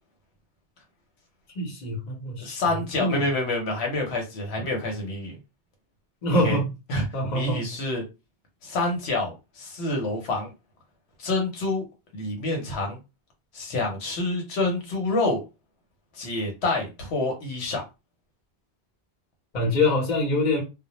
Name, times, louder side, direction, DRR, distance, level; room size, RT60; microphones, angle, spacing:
voice 1, 1.5-2.6 3.0-3.2 6.2-6.7 7.1-7.7 19.5-20.6, left 1 dB, 45° left, 0.9 m, -24 dB
voice 2, 2.4-5.4 6.3-6.6 6.9-7.0 7.3-8.0 8.6-10.5 11.2-11.8 12.1-13.0 13.5-15.4 16.2-17.8, left 2 dB, 85° left, 1.0 m, -27 dB
2.1 x 2.0 x 2.9 m
omnidirectional pair, 1.1 m